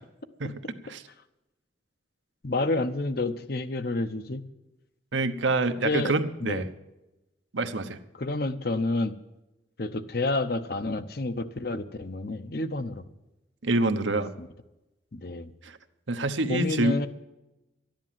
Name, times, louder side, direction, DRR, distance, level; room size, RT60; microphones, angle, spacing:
voice 1, 0.4-1.0 5.1-6.7 7.5-8.0 13.6-14.3 15.6-15.8 16.1-17.0, right 2 dB, 80° right, 7 dB, 1.0 m, -26 dB
voice 2, 2.4-4.4 5.8-6.7 8.2-9.1 9.8-13.1 14.1-14.5 15.1-15.5 16.5-17.1, left 2 dB, 55° left, 10 dB, 0.8 m, -29 dB
13.0 x 10.5 x 7.4 m, 0.98 s
head